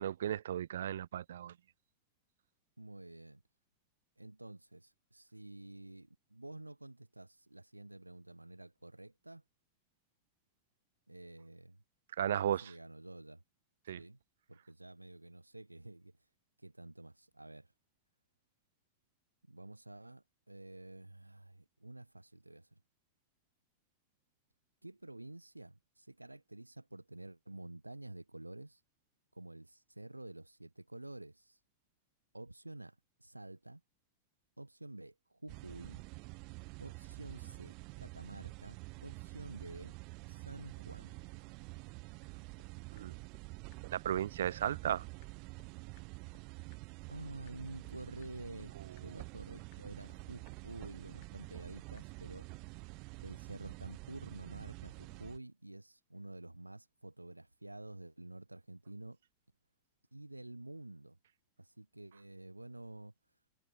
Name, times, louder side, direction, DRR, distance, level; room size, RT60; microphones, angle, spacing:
voice 1, 0.0-1.5 12.2-12.7 13.9-14.0 42.9-43.1 43.9-45.0, right 10 dB, 60° right, 0.7 m, -35 dB
voice 2, 2.8-3.4 4.2-9.4 11.1-11.8 12.3-13.4 13.9-14.2 14.5-16.2 16.6-17.7 19.5-22.8 24.8-28.8 29.3-31.6 32.3-33.8 34.6-36.0 36.8-39.9 40.3-41.2 47.1-52.5 53.2-59.2 60.1-61.2 61.6-63.1, right 2 dB, 85° right, 2.0 m, -50 dB
sound 1, 35.5-55.4, right 30 dB, 45° right, 1.8 m, -48 dB
sound 2, 42.2-42.3 42.6-42.7 43.0-43.1 43.3-43.4 43.7-43.8 44.1-44.2 44.5-44.6 44.8-44.9 45.2-45.3 45.6-45.7 46.0-46.1 46.3-46.4 46.7-46.8 47.1-47.2 47.5-47.6 47.8-47.9 48.2-48.3 48.6-48.7 49.0-49.1 49.3-49.4 49.7-49.8 50.1-50.2 50.5-50.6 50.8-50.9 51.2-51.3 51.6-51.7 52.0-52.1, left 24 dB, 50° left, 2.6 m, -64 dB
figure-of-eight pair, 90°, 0 cm